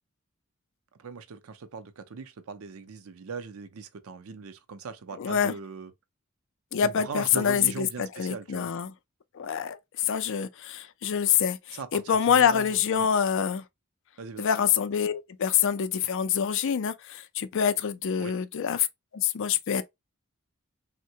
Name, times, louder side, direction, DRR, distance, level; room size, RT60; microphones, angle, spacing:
voice 1, 1.0-5.9 6.8-8.7 11.7-13.1 14.2-14.5 18.2-18.3, right 5 dB, 75° right, 0.5 m, -40 dB
voice 2, 5.2-5.5 6.7-8.9 9.3-9.8 10.1-13.6 14.4-18.9 19.1-19.8, left 8 dB, 60° left, 0.4 m, -26 dB
3.5 x 2.1 x 2.7 m
head